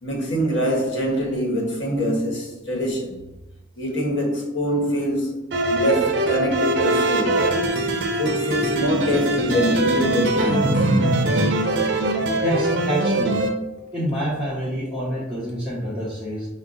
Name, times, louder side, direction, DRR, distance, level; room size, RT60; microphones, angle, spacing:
voice 1, 0.0-3.1 3.8-5.4 5.7-7.4 8.2-10.8, equal, 70° left, 1.2 m, -24 dB
sound 1, 5.5-13.5, right 1 dB, 65° right, 0.6 m, -22 dB
voice 2, 12.4-13.5 13.8-16.5, equal, 5° right, 0.9 m, -27 dB
5.6 x 2.2 x 3.8 m
head